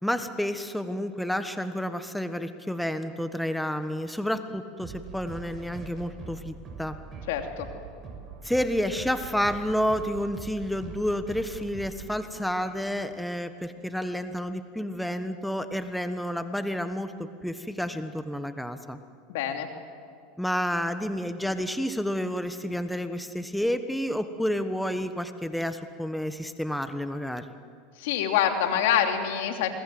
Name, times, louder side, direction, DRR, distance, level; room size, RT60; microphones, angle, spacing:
voice 1, 0.0-7.0 8.4-19.0 20.4-27.5, equal, ahead, 9 dB, 1.3 m, -30 dB
sound 1, 4.8-13.2, right 5 dB, 30° right, 6.8 m, -43 dB
voice 2, 7.3-7.7 19.3-19.7 28.0-29.7, left 9 dB, 75° left, 4 dB, 3.0 m, -25 dB
27.5 x 21.5 x 7.9 m, 2.3 s
hypercardioid pair, 100°, 0 cm